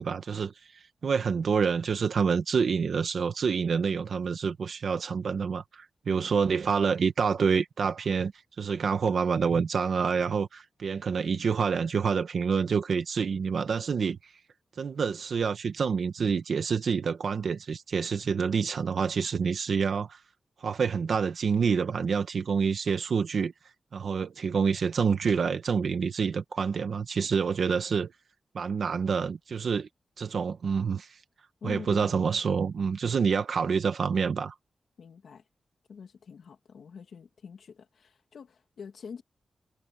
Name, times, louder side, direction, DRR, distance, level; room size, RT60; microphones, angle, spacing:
voice 1, 0.0-8.3 8.6-14.3 14.8-20.2 20.6-23.5 23.9-28.1 28.5-29.9 30.2-31.2 31.6-34.5, right 6 dB, 65° right, 1.1 m, -27 dB
voice 2, 6.1-6.4 31.6-32.2 35.0-35.5 35.9-39.2, left 6 dB, 85° left, 2.4 m, -45 dB
wide cardioid pair, 165°, 0 cm